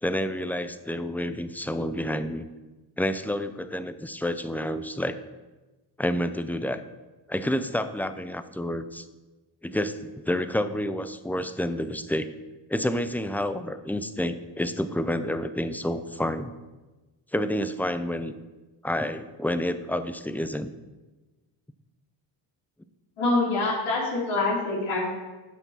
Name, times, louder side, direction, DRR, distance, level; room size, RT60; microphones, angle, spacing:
voice 1, 0.0-2.5 3.0-5.2 6.0-6.8 7.3-9.1 9.6-12.3 12.7-16.5 17.3-18.3 18.8-20.7, left 1 dB, 5° left, 11 dB, 0.4 m, -29 dB
voice 2, 23.2-25.1, left 2 dB, 85° left, -6 dB, 3.3 m, -25 dB
9.1 x 6.0 x 5.6 m, 1.2 s
cardioid pair, 85°, 48 cm